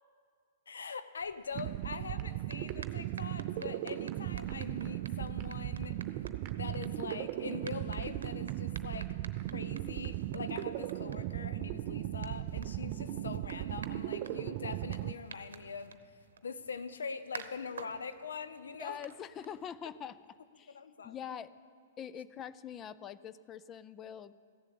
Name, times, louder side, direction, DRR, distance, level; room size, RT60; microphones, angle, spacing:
voice 1, 0.7-6.0 6.5-9.1 9.5-16.0 16.4-19.0 20.7-21.4 22.1-22.2, left 5 dB, 80° left, 11 dB, 0.7 m, -43 dB
sound 1, 1.1-11.0, right 7 dB, 35° right, 1.3 m, -60 dB
sound 2, 1.5-15.1, right 15 dB, 50° right, 0.3 m, -37 dB
sound 3, 2.2-20.0, right 6 dB, 80° right, 0.8 m, -53 dB
voice 2, 18.8-20.2 20.6-20.8 21.0-21.5 22.0-24.3, left 8 dB, 25° left, 15 dB, 0.4 m, -44 dB
15.0 x 7.3 x 8.5 m, 2.3 s
hypercardioid pair, 115°, 0 cm